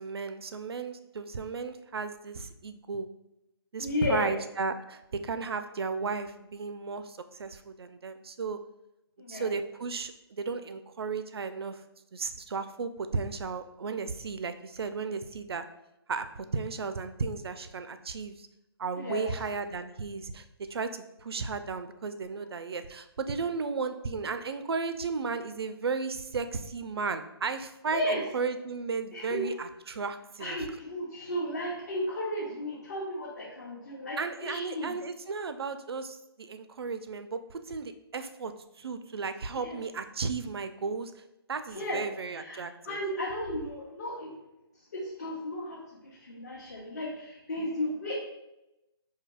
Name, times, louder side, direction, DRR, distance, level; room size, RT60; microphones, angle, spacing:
voice 1, 0.0-3.1 3.7-8.6 9.3-11.8 12.1-15.6 16.1-18.5 18.8-30.6 34.2-41.2 41.5-43.0, right 4 dB, 70° right, 10 dB, 0.4 m, -34 dB
voice 2, 3.8-4.4 9.2-9.5 19.0-19.3 27.9-28.2 29.1-29.5 30.4-34.9 39.6-39.8 41.7-42.0 42.3-42.6 42.9-44.3 44.9-48.2, left 1 dB, 40° left, -5 dB, 0.7 m, -34 dB
4.9 x 2.7 x 2.3 m, 0.92 s
hypercardioid pair, 180°, 14 cm